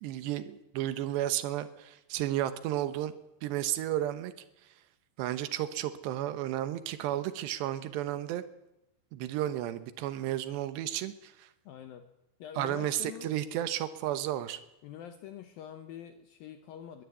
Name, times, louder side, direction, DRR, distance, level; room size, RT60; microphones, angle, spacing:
voice 1, 0.0-3.1 3.4-4.3 5.2-8.4 9.1-11.5 12.6-14.6, right 13 dB, 90° right, 12 dB, 3.3 m, -33 dB
voice 2, 11.7-12.1 12.4-13.8 14.8-17.0, left 10 dB, 70° left, 8 dB, 2.5 m, -46 dB
22.0 x 14.0 x 8.4 m, 0.87 s
omnidirectional pair, 4.8 m